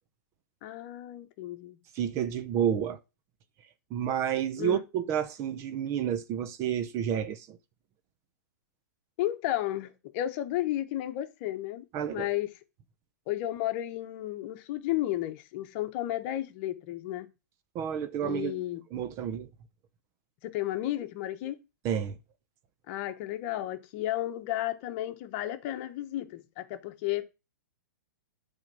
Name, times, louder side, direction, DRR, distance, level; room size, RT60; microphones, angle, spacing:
voice 1, 0.6-1.8 4.6-4.8 9.2-11.8 12.1-12.5 13.3-17.3 18.2-18.8 20.4-21.6 22.9-27.2, left 14 dB, 40° left, 1.1 m, -33 dB
voice 2, 1.9-3.0 3.9-7.6 11.9-12.3 17.7-18.5 18.9-19.5 21.8-22.2, right 9 dB, 30° right, 0.6 m, -30 dB
8.7 x 3.7 x 6.2 m
hypercardioid pair, 150°, 10 cm